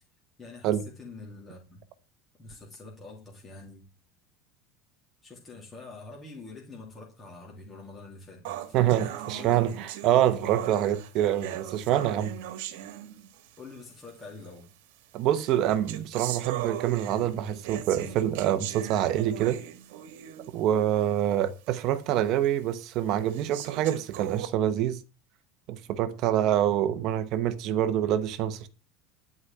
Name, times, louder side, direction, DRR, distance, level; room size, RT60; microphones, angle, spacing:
voice 1, 0.4-1.8 2.4-3.8 5.2-9.8 13.6-14.7, left 3 dB, 15° left, 2.7 m, -46 dB
sound 1, 8.4-13.6 14.4-14.5 15.3-20.6 21.0-21.1 21.7-21.8 22.4-22.5 23.3-24.5, right 12 dB, 70° right, 1.5 m, -38 dB
voice 2, 8.7-12.4 15.1-19.6 20.5-25.0 25.7-28.7, right 11 dB, 40° right, 0.9 m, -26 dB
11.0 x 4.9 x 7.8 m
cardioid pair, 175°, 0 cm